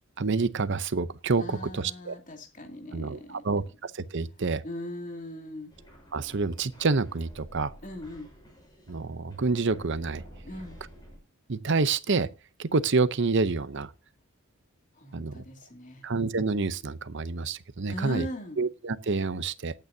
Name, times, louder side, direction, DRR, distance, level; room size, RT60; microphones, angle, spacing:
voice 1, 0.2-2.2 2.9-4.6 6.1-7.7 8.9-10.2 11.5-12.3 12.6-13.9 15.1-15.4 16.0-18.3 18.6-19.7, right 4 dB, 55° right, 0.8 m, -28 dB
voice 2, 1.3-3.4 4.6-5.7 7.8-8.3 10.4-10.8 14.9-16.1 17.9-18.6, left 1 dB, 35° left, 2.7 m, -39 dB
sound 1, 5.7-11.2, equal, 20° left, 6.2 m, -50 dB
19.0 x 9.1 x 2.8 m
head